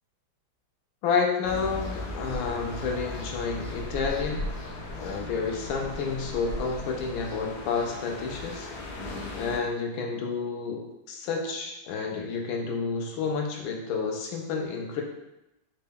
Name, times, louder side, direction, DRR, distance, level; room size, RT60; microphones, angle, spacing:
voice 1, 1.0-4.5 5.0-9.0 9.4-15.0, left 5 dB, 85° left, 1 dB, 1.4 m, -30 dB
sound 1, 1.4-9.6, left 1 dB, 70° left, 1.0 m, -37 dB
3.9 x 2.2 x 3.5 m, 0.93 s
omnidirectional pair, 2.1 m